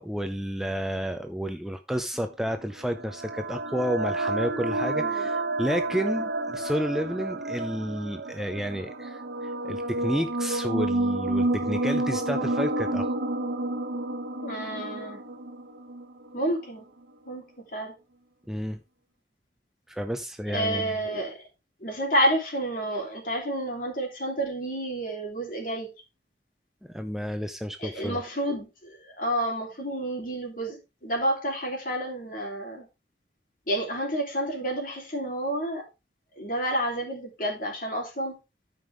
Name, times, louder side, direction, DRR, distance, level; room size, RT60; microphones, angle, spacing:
voice 1, 0.0-13.1 18.5-18.8 19.9-20.9 26.9-28.2, equal, ahead, 0.4 m, -31 dB
sound 1, 2.4-16.5, right 2 dB, 75° right, 1.0 m, -30 dB
voice 2, 5.0-5.3 14.4-15.2 16.3-16.8 17.2-17.4 17.7-17.9 20.5-21.4 21.8-25.9 27.8-32.9 33.7-35.8 36.4-38.4, right 1 dB, 50° left, 3.2 m, -29 dB
13.0 x 5.3 x 3.5 m
head